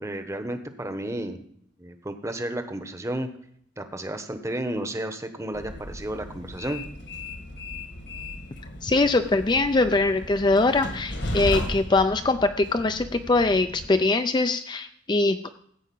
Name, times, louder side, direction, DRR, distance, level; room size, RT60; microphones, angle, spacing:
voice 1, 0.0-1.4 1.8-3.3 3.8-6.8, right 1 dB, 15° right, 7 dB, 0.9 m, -32 dB
Train, 5.5-13.9, left 1 dB, 65° left, 1.7 m, -35 dB
voice 2, 8.8-15.6, left 3 dB, 25° left, 9 dB, 0.4 m, -22 dB
14.5 x 4.9 x 8.4 m, 0.68 s
head